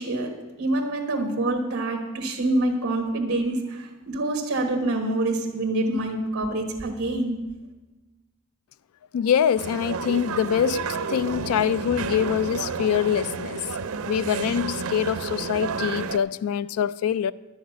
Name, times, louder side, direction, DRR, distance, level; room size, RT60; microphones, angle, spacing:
voice 1, 0.0-7.5, right 2 dB, 55° right, 1.3 m, -26 dB
voice 2, 9.1-10.8 11.1-13.6 14.1-17.3, left 8 dB, 80° left, 0.3 m, -24 dB
sound 1, 9.6-16.2, right 5 dB, 90° right, 0.6 m, -31 dB
11.0 x 6.4 x 9.2 m
head